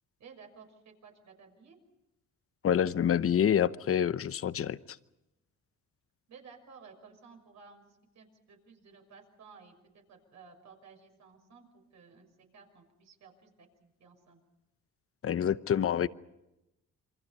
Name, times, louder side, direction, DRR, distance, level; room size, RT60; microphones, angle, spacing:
voice 1, 0.2-1.8 6.3-14.4, right 5 dB, 65° right, 6.4 m, -55 dB
voice 2, 2.6-5.0 15.2-16.1, left 9 dB, 50° left, 0.9 m, -27 dB
28.0 x 24.0 x 5.5 m
cardioid pair, 90°, 30 cm